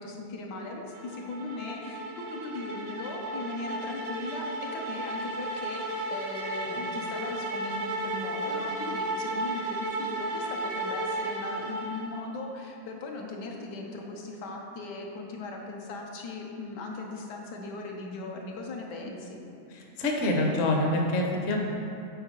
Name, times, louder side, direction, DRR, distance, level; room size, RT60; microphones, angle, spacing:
voice 1, 0.0-19.4, left 3 dB, 80° left, 0 dB, 1.4 m, -38 dB
sound 1, 0.9-12.3, right 1 dB, 90° right, 1.4 m, -34 dB
voice 2, 20.0-21.6, left 1 dB, 50° left, 0 dB, 0.9 m, -25 dB
7.2 x 4.7 x 4.5 m, 2.5 s
omnidirectional pair, 1.8 m